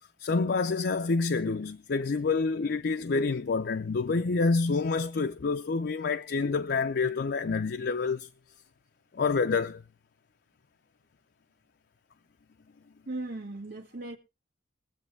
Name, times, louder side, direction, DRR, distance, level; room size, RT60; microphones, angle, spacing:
voice 1, 0.2-8.3 9.1-9.8, left 4 dB, 60° left, 0.5 m, -27 dB
voice 2, 13.1-14.2, right 2 dB, 60° right, 1.6 m, -37 dB
22.0 x 7.8 x 3.3 m
head